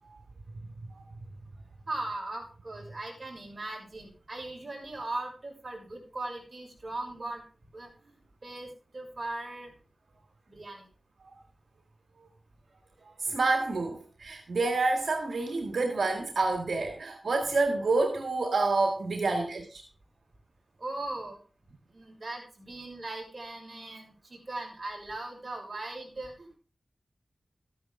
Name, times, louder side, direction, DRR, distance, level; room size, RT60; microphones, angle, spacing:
voice 1, 1.9-7.4 7.7-9.7 10.5-10.9 20.8-21.4 21.9-26.6, right 2 dB, 50° right, 0 dB, 6.2 m, -39 dB
voice 2, 13.2-19.8, right 3 dB, 80° right, 3 dB, 1.8 m, -28 dB
14.0 x 10.5 x 3.7 m, 0.37 s
wide cardioid pair, 65°, 0 cm